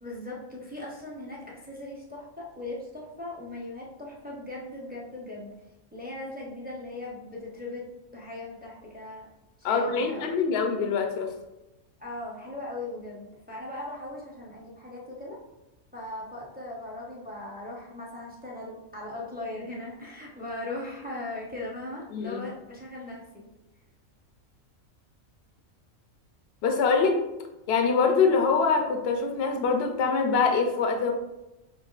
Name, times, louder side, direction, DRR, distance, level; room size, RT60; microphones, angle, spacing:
voice 1, 0.0-5.5 5.9-7.8 8.1-9.3 9.6-10.6 12.0-15.4 15.9-23.2, left 2 dB, 10° right, -4 dB, 0.4 m, -39 dB
voice 2, 9.6-11.3 22.1-22.4 26.6-27.2 27.7-31.1, left 5 dB, 65° left, 4 dB, 0.6 m, -24 dB
6.0 x 2.5 x 2.4 m, 0.99 s
omnidirectional pair, 1.4 m